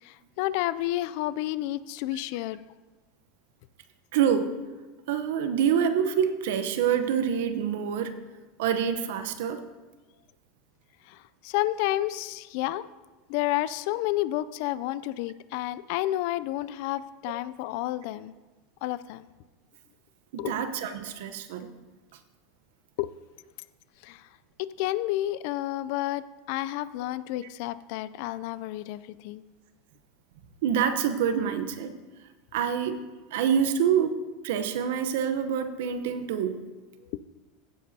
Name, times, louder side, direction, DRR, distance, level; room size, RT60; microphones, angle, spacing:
voice 1, 0.0-2.6 11.1-12.8 13.3-18.3 18.8-19.3 20.4-20.5 23.0-23.1 24.0-24.3 24.6-29.4 37.1-37.2, left 15 dB, 65° left, 17 dB, 0.4 m, -30 dB
voice 2, 4.1-4.5 5.1-8.2 8.6-9.6 20.3-21.7 30.6-31.9 32.5-33.0 33.3-34.1 34.4-36.6, right 8 dB, 75° right, 10 dB, 0.8 m, -26 dB
15.5 x 7.5 x 2.8 m, 1.2 s
hypercardioid pair, 105°, 0 cm